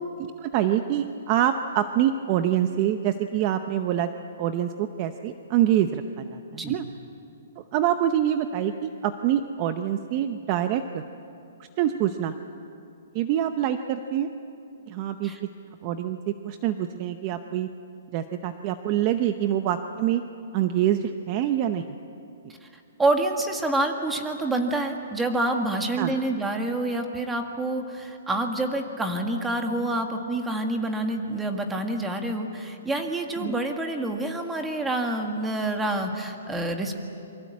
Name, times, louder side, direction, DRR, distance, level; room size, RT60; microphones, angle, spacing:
voice 1, 0.2-4.1 4.4-6.8 7.7-11.0 11.8-12.3 13.1-14.3 14.9-15.5 15.8-17.7 18.1-20.2 20.5-21.8 26.0-26.1 33.4-33.5, right 11 dB, 30° right, 8 dB, 0.8 m, -25 dB
voice 2, 23.0-37.0, right 2 dB, 5° right, 4 dB, 1.7 m, -27 dB
27.5 x 23.5 x 8.5 m, 2.7 s
hypercardioid pair, 165°, 0 cm